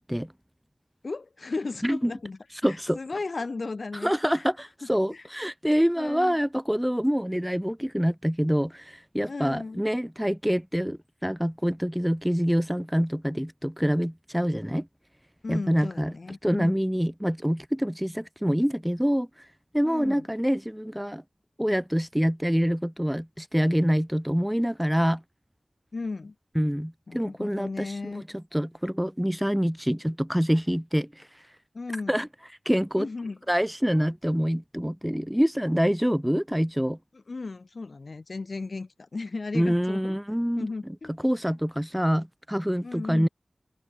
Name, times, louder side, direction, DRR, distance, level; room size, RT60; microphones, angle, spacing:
voice 1, 1.0-4.5 5.1-5.3 6.0-6.4 9.3-9.8 15.4-16.7 19.8-20.3 25.9-26.4 27.1-28.2 31.7-32.1 33.0-33.4 37.1-40.2 40.6-41.2 42.8-43.3, left 3 dB, 65° left, 5.3 m, -35 dB
voice 2, 2.6-3.0 4.0-14.9 15.5-16.1 16.4-19.3 19.7-21.2 21.6-25.2 26.5-31.3 32.1-32.3 32.6-33.1 33.5-37.0 39.5-40.7 41.2-43.3, equal, 5° right, 1.1 m, -26 dB
wide cardioid pair, 55°, 0 cm